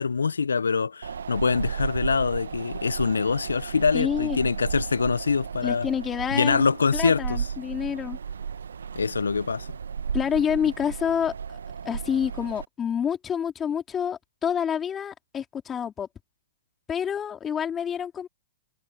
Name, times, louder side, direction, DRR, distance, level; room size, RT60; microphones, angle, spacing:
voice 1, 0.0-5.9 6.3-7.5 8.9-9.7, left 5 dB, 80° left, 1.0 m, -24 dB
Wind, 1.0-12.6, right 6 dB, 75° right, 1.5 m, -34 dB
voice 2, 3.9-4.5 5.6-8.2 10.1-11.3 11.8-16.1 16.9-18.3, left 8 dB, 20° left, 4.3 m, -28 dB
figure-of-eight pair, 110°, 0 cm